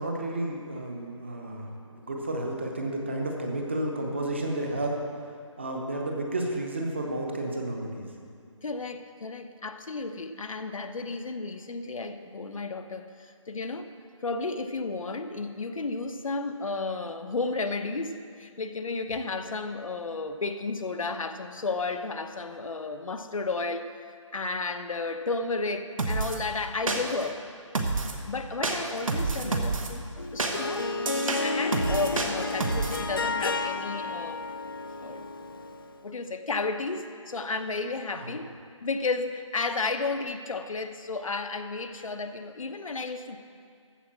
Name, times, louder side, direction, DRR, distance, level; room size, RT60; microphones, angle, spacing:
voice 1, 0.0-5.0 5.6-8.1 29.1-29.6 38.1-38.3, right 1 dB, 20° right, 1 dB, 0.8 m, -32 dB
voice 2, 8.6-13.9 14.2-27.4 28.3-34.4 35.0-35.3 36.0-38.5 38.8-43.4, left 3 dB, 90° left, 7 dB, 0.9 m, -33 dB
sound 1, 26.0-26.4 26.9-27.3 27.7-28.2 28.6-29.9 30.4-33.0, right 3 dB, 85° right, 1.4 m, -29 dB
Harp, 30.2-36.0, left 3 dB, 45° left, 0.5 m, -32 dB
14.0 x 4.8 x 7.4 m, 2.3 s
hypercardioid pair, 180°, 17 cm